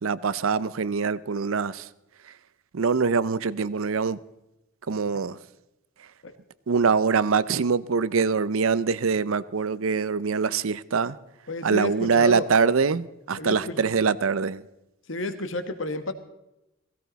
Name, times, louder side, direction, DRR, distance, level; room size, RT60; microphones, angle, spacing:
voice 1, 0.0-1.9 2.7-4.2 4.9-5.4 6.7-11.2 11.6-14.6, right 5 dB, 85° right, 0.6 m, -24 dB
voice 2, 11.5-12.5 13.3-13.8 15.1-16.1, left 1 dB, 70° left, 1.4 m, -31 dB
16.5 x 16.0 x 4.1 m
head